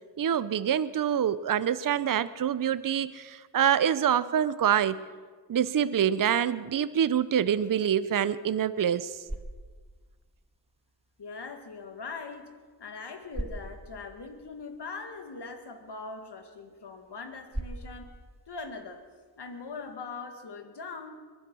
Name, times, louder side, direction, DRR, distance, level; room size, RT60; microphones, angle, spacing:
voice 1, 0.2-5.0 5.5-9.2, right 9 dB, 50° right, 15 dB, 0.7 m, -26 dB
sound 1, 8.9-20.0, right 1 dB, 15° right, 1.8 m, -45 dB
voice 2, 11.2-12.5 12.8-18.1 18.5-19.0 19.4-21.2, left 4 dB, 65° left, 6 dB, 2.1 m, -41 dB
22.0 x 10.0 x 6.2 m, 1.5 s
cardioid pair, 45°, 44 cm